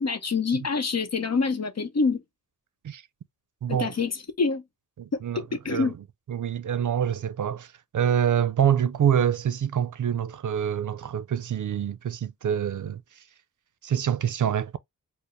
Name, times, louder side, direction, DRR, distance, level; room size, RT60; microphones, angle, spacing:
voice 1, 0.0-2.2 3.7-4.6 5.1-5.9, left 4 dB, 50° left, 0.8 m, -26 dB
voice 2, 3.6-3.9 5.0-5.4 5.7-5.9 6.3-13.0 13.8-14.8, right 9 dB, 65° right, 0.5 m, -26 dB
4.5 x 2.0 x 3.1 m
cardioid pair, 55°, 34 cm